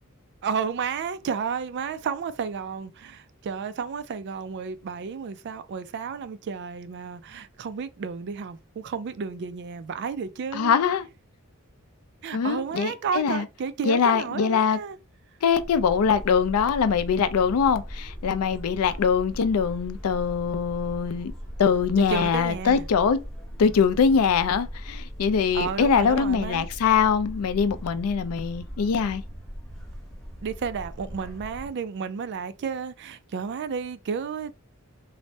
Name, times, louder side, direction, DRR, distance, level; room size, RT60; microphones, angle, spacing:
voice 1, 0.4-10.8 12.2-15.0 22.1-22.9 25.5-26.7 30.4-34.5, right 6 dB, 55° right, 0.3 m, -32 dB
voice 2, 10.5-11.1 12.3-13.4 13.9-14.8 15.4-21.3 21.6-23.2 23.6-29.2, left 6 dB, 85° left, 0.4 m, -23 dB
sound 1, 15.5-31.7, equal, ahead, 0.7 m, -39 dB
3.2 x 2.1 x 2.6 m
head